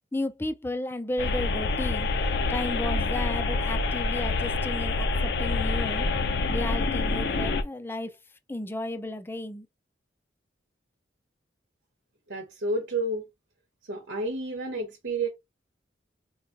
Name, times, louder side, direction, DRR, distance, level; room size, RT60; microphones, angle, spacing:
voice 1, 0.1-2.1 2.5-6.1 6.5-8.2 8.5-9.7, left 1 dB, 10° left, 0.4 m, -33 dB
sound 1, 1.2-7.6, left 3 dB, 65° left, 0.6 m, -27 dB
voice 2, 12.3-13.3 13.9-15.3, right 2 dB, 85° right, 1.1 m, -30 dB
4.4 x 2.3 x 2.6 m
head